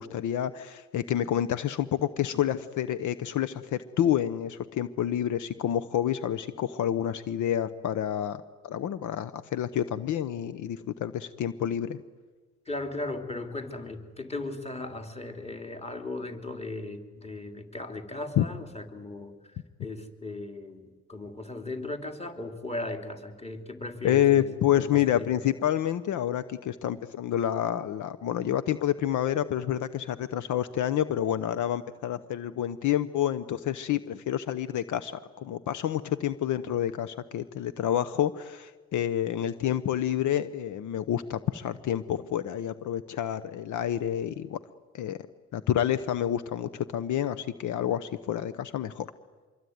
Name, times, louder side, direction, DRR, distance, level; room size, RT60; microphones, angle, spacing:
voice 1, 0.0-12.0 18.4-18.5 24.0-35.1 35.4-44.6 44.9-45.2 45.5-49.1, left 11 dB, 75° left, 13 dB, 0.9 m, -28 dB
voice 2, 12.6-24.5 24.8-25.3, left 2 dB, 20° left, 5 dB, 3.2 m, -37 dB
25.0 x 23.5 x 9.5 m, 1.4 s
cardioid pair, 90°, 30 cm